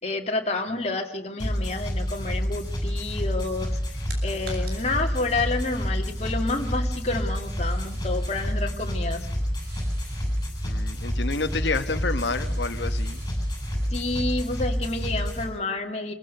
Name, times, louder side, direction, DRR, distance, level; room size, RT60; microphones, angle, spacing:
voice 1, 0.0-3.8 4.2-9.3 13.9-16.1, left 3 dB, 40° left, 3 dB, 2.5 m, -29 dB
sound 1, 1.4-15.4, equal, 20° left, 7.4 m, -28 dB
sound 2, 3.3-14.2, right 3 dB, 60° right, 5.7 m, -51 dB
voice 2, 10.6-13.2, left 3 dB, 90° left, 7 dB, 1.3 m, -29 dB
26.5 x 16.0 x 6.8 m, 0.74 s
head